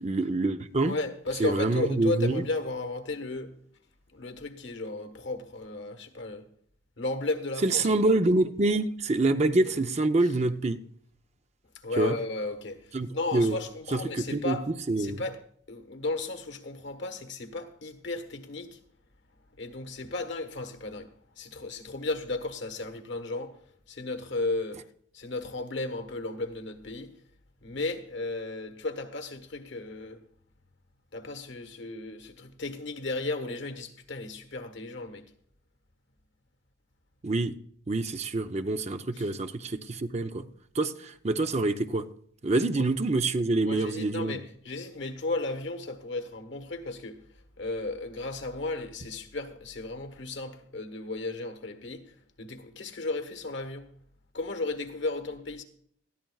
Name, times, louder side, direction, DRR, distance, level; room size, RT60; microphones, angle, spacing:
voice 1, 0.0-0.9 1.4-2.4 7.6-10.8 12.0-12.1 12.9-13.6 13.9-14.6 14.9-15.2 37.2-37.5 37.9-40.5 40.7-42.1 42.4-44.4, right 2 dB, 35° right, 0.6 m, -26 dB
voice 2, 0.8-3.5 4.1-6.5 7.0-8.0 11.8-14.7 15.0-15.4 15.7-18.8 19.6-23.6 23.9-24.8 25.1-27.1 27.6-30.2 31.1-35.3 39.1-39.3 42.8-42.9 43.6-47.2 47.6-53.9 54.3-55.6, left 2 dB, 65° left, 1.3 m, -34 dB
19.5 x 14.0 x 2.4 m
head